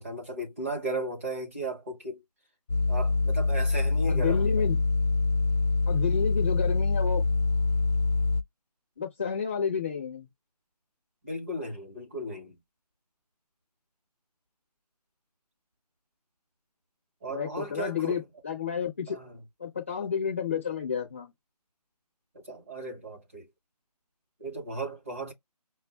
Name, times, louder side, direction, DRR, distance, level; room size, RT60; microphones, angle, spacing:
voice 1, 0.0-2.2 2.9-4.7 11.2-12.6 17.2-18.2 19.1-19.4 22.4-23.5 24.4-25.3, right 2 dB, 20° right, 1.0 m, -35 dB
sound 1, 2.7-8.4, left 3 dB, 75° left, 0.6 m, -25 dB
voice 2, 4.1-4.8 5.9-7.3 9.0-10.3 17.3-19.2 19.6-21.3, left 7 dB, 20° left, 0.7 m, -30 dB
5.9 x 2.1 x 2.9 m
figure-of-eight pair, 170°, 21 cm